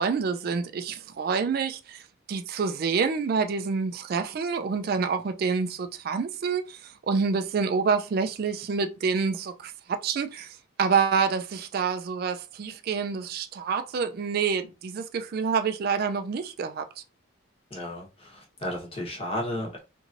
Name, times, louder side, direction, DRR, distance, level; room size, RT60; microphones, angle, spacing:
voice 1, 0.0-2.0 2.3-10.5 10.8-16.8, right 5 dB, 45° right, 0.3 m, -27 dB
voice 2, 17.7-19.8, left 1 dB, 25° left, 0.9 m, -33 dB
3.0 x 2.6 x 2.4 m
head